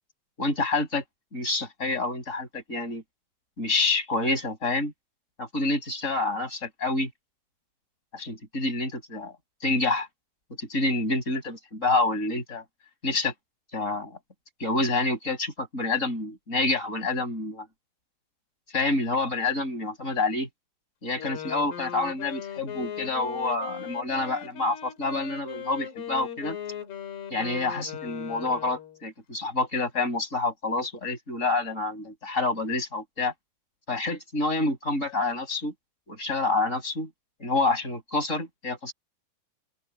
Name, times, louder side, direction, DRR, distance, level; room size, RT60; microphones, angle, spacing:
voice 1, 0.4-1.0 1.3-3.0 3.6-4.9 5.4-7.1 8.1-9.3 9.6-10.1 10.6-12.6 13.0-13.3 13.7-14.2 14.6-17.7 18.7-20.5 21.0-26.6 27.3-33.3 33.9-35.7 36.1-37.1 37.4-38.9, left 2 dB, 15° left, 6.9 m, -28 dB
Wind instrument woodwind instrument, 21.1-29.0, left 9 dB, 55° left, 4.3 m, -38 dB
open air
omnidirectional pair, 5.9 m